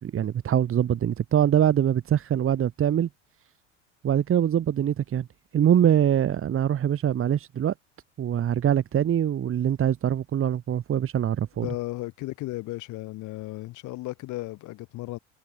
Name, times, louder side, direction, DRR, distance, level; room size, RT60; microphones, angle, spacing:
voice 1, 0.0-3.1 4.0-5.3 5.5-7.7 8.2-11.7, right 10 dB, 35° right, 3.8 m, -23 dB
voice 2, 11.6-15.2, left 18 dB, 55° left, 6.3 m, -35 dB
hypercardioid pair, 80°, 36 cm